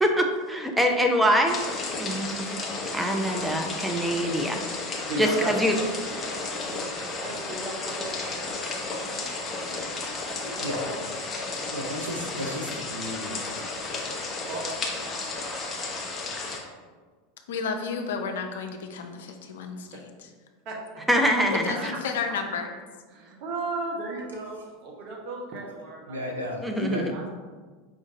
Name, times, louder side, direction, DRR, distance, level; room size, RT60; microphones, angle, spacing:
voice 1, 0.0-1.6 2.0-2.6 2.9-4.6 5.2-5.7 21.1-21.7 26.6-27.1, equal, 5° right, 3 dB, 0.6 m, -24 dB
sound 1, 1.4-16.6, left 3 dB, 25° left, 0.8 m, -33 dB
voice 2, 5.1-6.9 7.2-8.8 9.1-9.9 10.4-11.1 14.4-15.0 20.6-20.8 21.3-21.4 21.7-22.0 22.5-22.6 23.1-26.6 26.9-27.3, right 2 dB, 45° right, -1 dB, 0.9 m, -36 dB
voice 3, 11.7-13.4 26.1-27.1, left 1 dB, 85° right, -1 dB, 0.5 m, -33 dB
voice 4, 17.5-20.3 21.5-22.7, left 5 dB, 65° left, 4 dB, 0.5 m, -32 dB
4.9 x 2.5 x 3.9 m, 1.4 s
figure-of-eight pair, 85°, 0 cm